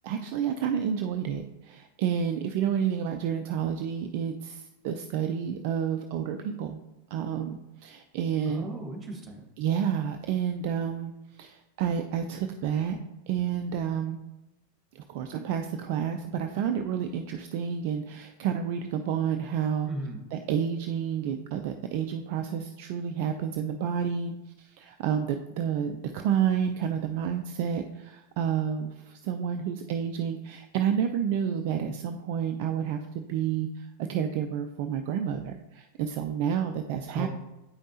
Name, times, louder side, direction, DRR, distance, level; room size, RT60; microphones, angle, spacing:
voice 1, 0.0-6.8 7.1-8.7 9.6-13.0 13.3-14.2 14.9-19.9 20.3-37.3, right 8 dB, 45° right, 6 dB, 0.4 m, -30 dB
voice 2, 8.4-9.5 19.8-20.2 37.1-37.3, right 2 dB, 20° right, 2 dB, 1.5 m, -36 dB
8.5 x 5.2 x 2.8 m, 0.97 s
figure-of-eight pair, 90°, 0 cm